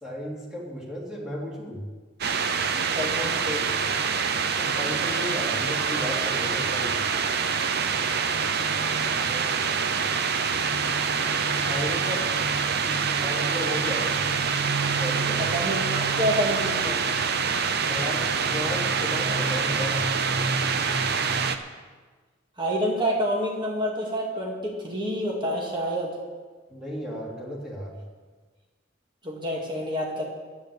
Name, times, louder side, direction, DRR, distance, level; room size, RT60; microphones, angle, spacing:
voice 1, 0.0-1.8 4.6-7.0 8.8-9.6 11.6-12.3 12.8-14.2 15.0-15.4 17.7-20.1 26.7-28.0, equal, 5° right, -5 dB, 2.9 m, -34 dB
sound 1, 2.2-21.6, right 5 dB, 55° right, 0.7 m, -25 dB
voice 2, 3.0-3.7 15.5-17.0 22.6-26.1 29.2-30.2, equal, 25° right, -2 dB, 2.2 m, -28 dB
10.0 x 8.7 x 8.6 m, 1.4 s
head